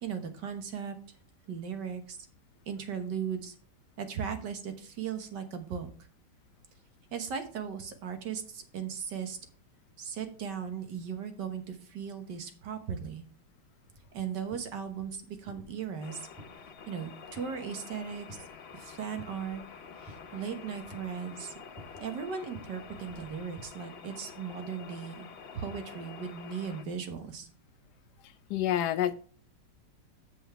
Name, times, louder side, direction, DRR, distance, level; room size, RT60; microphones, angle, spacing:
voice 1, 0.0-1.0 1.5-2.2 2.7-3.6 4.0-5.9 7.1-9.4 10.0-13.3 14.1-16.3 16.9-18.4 18.7-19.6 20.0-21.5 22.0-25.3 25.5-27.5, right 7 dB, 75° right, 1.8 m, -37 dB
sound 1, 13.9-23.7, right 1 dB, ahead, 2.6 m, -55 dB
sound 2, 16.0-26.8, left 6 dB, 50° left, 0.8 m, -48 dB
voice 2, 28.5-29.1, left 11 dB, 75° left, 1.1 m, -27 dB
7.8 x 7.0 x 4.6 m
omnidirectional pair, 1.9 m